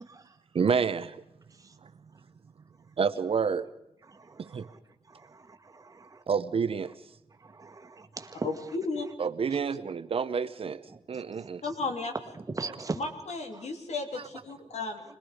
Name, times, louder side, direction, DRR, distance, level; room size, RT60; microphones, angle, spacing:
voice 1, 0.5-1.2 1.8-1.9 3.0-3.7 4.4-4.7 6.3-6.9 9.2-11.6, right 6 dB, 55° right, 12 dB, 0.7 m, -29 dB
voice 2, 4.1-4.4 5.3-5.8 7.5-8.5 11.3-11.5 12.5-13.0, right 3 dB, 30° right, 6 dB, 1.4 m, -38 dB
voice 3, 8.4-9.1 11.6-12.1 12.9-15.0, left 3 dB, 70° left, 4 dB, 3.1 m, -34 dB
25.5 x 21.0 x 5.0 m, 0.84 s
wide cardioid pair, 160°, 12 cm